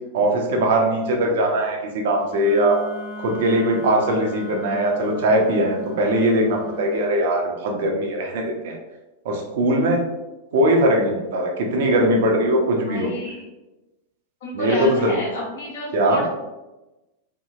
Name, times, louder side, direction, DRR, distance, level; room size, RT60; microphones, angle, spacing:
voice 1, 0.1-2.8 3.2-8.8 9.2-10.0 10.5-13.1 14.5-15.1 15.9-16.2, right 1 dB, 55° right, 1 dB, 0.5 m, -20 dB
Wind instrument woodwind instrument, 2.3-7.1, equal, 10° right, 0.7 m, -36 dB
voice 2, 12.9-13.5 14.4-16.3, left 1 dB, 60° left, -3 dB, 0.9 m, -29 dB
2.7 x 2.7 x 2.3 m, 1.0 s
figure-of-eight pair, 90°, 0 cm